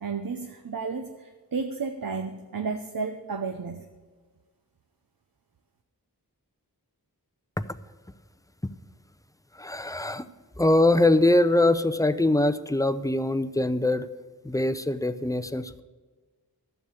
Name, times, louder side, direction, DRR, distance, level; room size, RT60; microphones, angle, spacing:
voice 1, 0.0-3.8, right 4 dB, 65° right, 6 dB, 0.8 m, -32 dB
voice 2, 9.5-10.3 10.6-14.1 14.4-15.8, left 2 dB, 10° left, 12 dB, 0.6 m, -23 dB
12.5 x 7.1 x 8.3 m, 1.4 s
wide cardioid pair, 55°, 38 cm